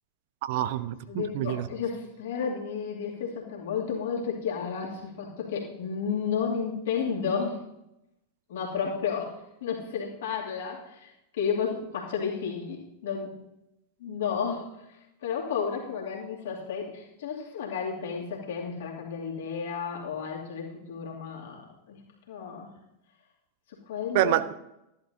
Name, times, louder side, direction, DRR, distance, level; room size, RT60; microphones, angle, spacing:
voice 1, 0.4-1.7 24.1-24.5, right 13 dB, 50° right, 13 dB, 0.5 m, -27 dB
voice 2, 1.1-7.6 8.5-13.3 14.0-21.6 21.9-22.0 22.3-22.7 23.7-24.3, left 6 dB, 60° left, -2 dB, 2.6 m, -32 dB
13.5 x 11.0 x 2.8 m, 0.86 s
figure-of-eight pair, 90°, 0 cm